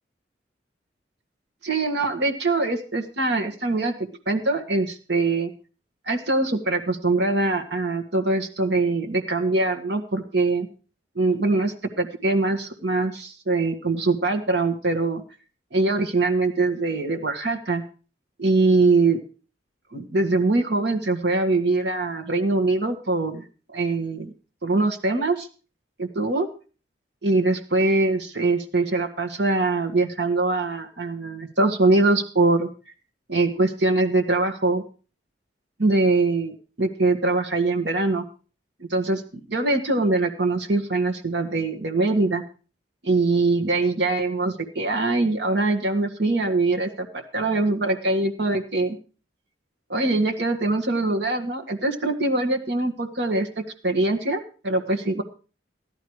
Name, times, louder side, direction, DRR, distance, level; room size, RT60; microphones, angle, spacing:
voice 1, 1.6-3.9 4.3-5.5 6.1-10.7 11.2-15.2 15.7-17.8 18.4-19.2 19.9-23.4 23.7-24.3 24.6-25.5 26.0-26.5 27.2-32.7 33.3-34.8 35.8-38.2 38.9-39.2 39.5-42.4 43.0-49.0 49.9-55.2, right 2 dB, 65° right, 3 dB, 1.8 m, -23 dB
15.5 x 11.5 x 4.8 m, 0.37 s
head